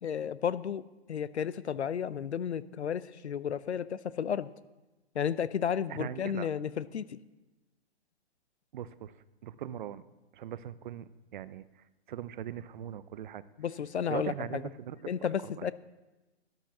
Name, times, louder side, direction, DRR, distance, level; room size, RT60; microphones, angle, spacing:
voice 1, 0.0-0.8 1.1-4.5 5.1-7.2 13.6-14.6 15.1-15.7, left 8 dB, 85° left, 17 dB, 0.7 m, -33 dB
voice 2, 5.9-6.5 8.7-9.1 9.4-10.0 10.3-11.6 12.1-13.4 14.1-15.0 15.6-15.7, right 10 dB, 50° right, 16 dB, 0.6 m, -40 dB
12.0 x 9.1 x 7.2 m, 1.1 s
hypercardioid pair, 130°, 33 cm